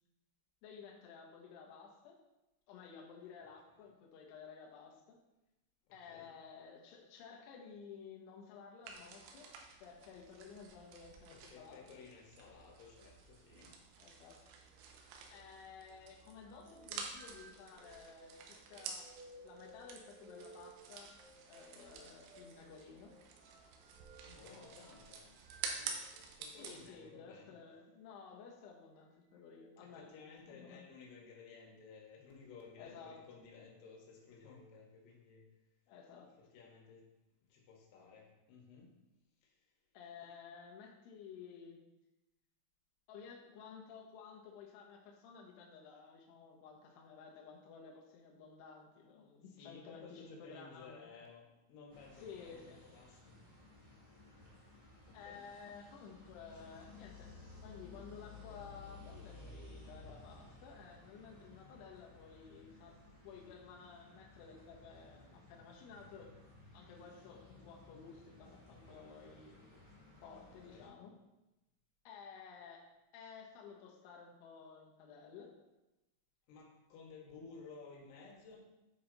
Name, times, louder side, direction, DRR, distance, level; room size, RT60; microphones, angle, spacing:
voice 1, 0.6-2.2 2.7-5.2 5.9-9.5 9.8-11.9 14.0-14.4 15.3-19.1 19.4-21.2 21.5-23.2 26.6-30.1 30.5-30.8 32.8-33.2 35.9-36.4 39.9-41.8 43.1-51.1 52.2-52.8 55.1-57.3 57.6-66.3 66.7-69.6 70.2-71.2 72.0-75.5, left 6 dB, 75° left, -1 dB, 2.7 m, -54 dB
voice 2, 5.9-6.3 11.3-13.8 24.2-25.4 25.7-27.6 29.8-35.5 36.4-37.1 37.5-39.0 39.4-39.7 49.5-53.4 55.1-55.4 70.5-70.9 76.5-78.6, left 5 dB, 90° left, -1 dB, 4.1 m, -56 dB
sound 1, 8.8-26.9, right 5 dB, 90° right, 3.3 m, -50 dB
sound 2, 16.4-26.4 27.1-27.4 29.4-29.7 30.6-31.1 31.6-31.9 32.7-33.2 33.7-34.7, right 2 dB, 55° right, 2.1 m, -60 dB
sound 3, 51.9-70.9, left 2 dB, 25° right, 1.8 m, -57 dB
9.7 x 4.7 x 3.9 m, 0.98 s
omnidirectional pair, 5.7 m